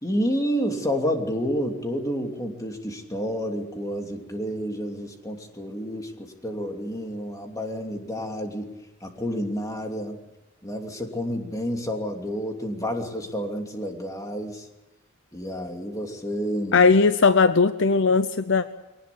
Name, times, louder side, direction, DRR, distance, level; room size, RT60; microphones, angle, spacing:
voice 1, 0.0-8.7 9.0-10.2 10.6-14.7 15.3-16.8, equal, 15° left, 3 dB, 2.9 m, -29 dB
voice 2, 16.7-18.7, left 4 dB, 60° left, 12 dB, 0.7 m, -18 dB
22.5 x 19.0 x 8.5 m, 0.97 s
head